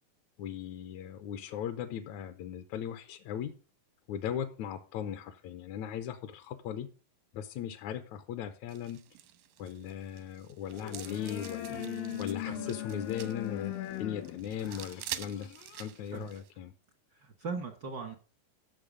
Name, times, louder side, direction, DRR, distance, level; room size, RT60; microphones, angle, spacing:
voice 1, 0.4-3.5 4.1-6.9 7.3-9.0 9.6-11.8 12.2-13.7 14.0-15.5 15.8-16.7, left 9 dB, 75° left, 8 dB, 1.9 m, -38 dB
sound 1, 8.7-16.5, right 12 dB, 90° right, 2.7 m, -47 dB
sound 2, 10.7-15.9, left 13 dB, 90° left, 2.6 m, -40 dB
voice 2, 11.7-12.7 16.1-16.3 17.1-18.1, right 5 dB, 70° right, 5 dB, 1.0 m, -40 dB
14.5 x 6.7 x 5.0 m, 0.38 s
omnidirectional pair, 3.8 m